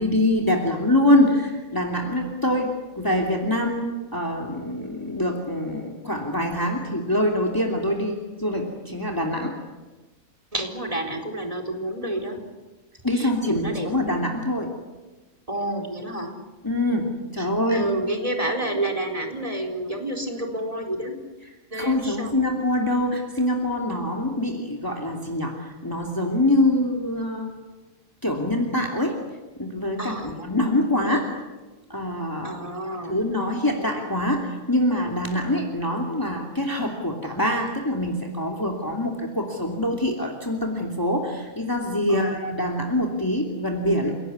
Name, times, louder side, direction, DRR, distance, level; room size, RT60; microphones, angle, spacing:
voice 1, 0.0-9.5 13.0-14.7 16.6-17.8 21.7-27.5 28.2-29.2 29.6-31.3 31.9-32.6 32.9-44.2, left 1 dB, 15° left, 1 dB, 2.8 m, -24 dB
voice 2, 10.5-12.4 13.1-13.9 15.5-16.3 17.4-21.2 21.7-22.4 30.0-30.5 32.4-33.2 42.1-42.4, right 1 dB, 25° right, 2 dB, 4.4 m, -29 dB
29.0 x 18.0 x 9.6 m, 1.1 s
omnidirectional pair, 1.5 m